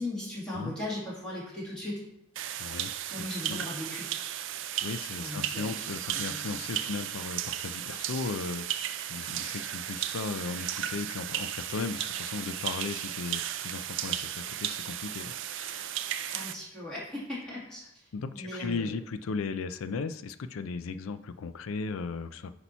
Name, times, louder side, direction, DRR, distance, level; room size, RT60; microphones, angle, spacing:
voice 1, 0.0-2.0 3.1-4.1 5.2-5.7 6.1-6.8 9.3-9.4 16.3-17.9 18.3-19.0, left 1 dB, 5° left, -8 dB, 2.3 m, -38 dB
sound 1, 2.4-16.5, right 11 dB, 65° right, 0.4 m, -35 dB
voice 2, 2.6-2.9 3.2-3.6 4.8-16.1 18.1-22.5, left 4 dB, 85° left, 12 dB, 0.4 m, -36 dB
8.1 x 3.0 x 5.5 m, 0.78 s
head